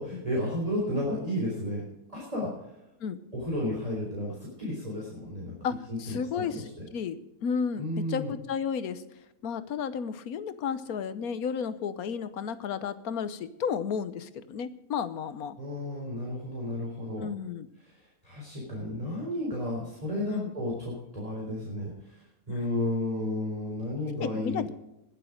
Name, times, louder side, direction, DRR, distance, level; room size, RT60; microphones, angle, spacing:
voice 1, 0.0-1.8 2.1-2.5 3.3-5.6 5.9-6.7 7.8-8.3 15.6-17.3 17.8-24.7, left 1 dB, 25° right, -4 dB, 3.9 m, -33 dB
voice 2, 5.6-9.0 9.4-15.6 17.2-17.7 20.3-20.5 24.2-24.7, left 7 dB, 85° left, 13 dB, 1.4 m, -33 dB
20.5 x 7.5 x 5.0 m, 0.91 s
omnidirectional pair, 1.5 m